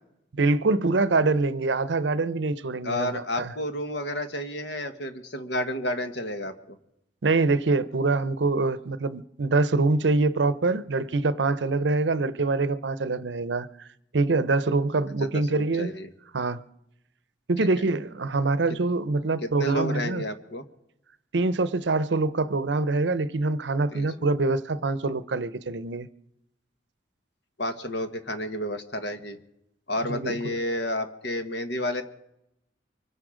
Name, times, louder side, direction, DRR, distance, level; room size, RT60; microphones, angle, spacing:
voice 1, 0.3-3.5 7.2-13.9 14.1-15.9 16.3-16.6 17.5-20.2 21.3-26.1 30.1-30.6, right 3 dB, 80° right, 0.7 m, -25 dB
voice 2, 2.8-6.8 15.2-16.1 19.4-20.6 23.9-24.1 27.6-29.4 29.9-32.0, left 1 dB, 70° left, 1.5 m, -31 dB
24.5 x 10.0 x 5.0 m
head